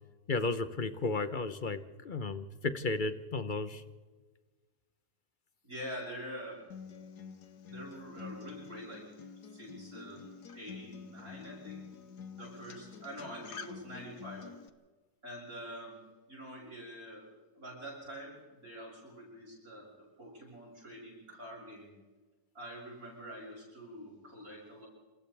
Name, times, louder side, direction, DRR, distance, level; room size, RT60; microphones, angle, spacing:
voice 1, 0.3-3.8, left 3 dB, 35° left, 11 dB, 1.0 m, -34 dB
voice 2, 5.6-6.7 7.7-9.1 9.4-10.3 10.5-11.9 12.4-14.5 15.2-16.0 16.3-22.0 22.5-24.9, equal, 60° right, -4 dB, 7.7 m, -46 dB
Acoustic guitar, 6.7-14.7, left 6 dB, 85° left, 1.7 m, -48 dB
27.5 x 27.5 x 3.5 m, 1.3 s
omnidirectional pair, 1.7 m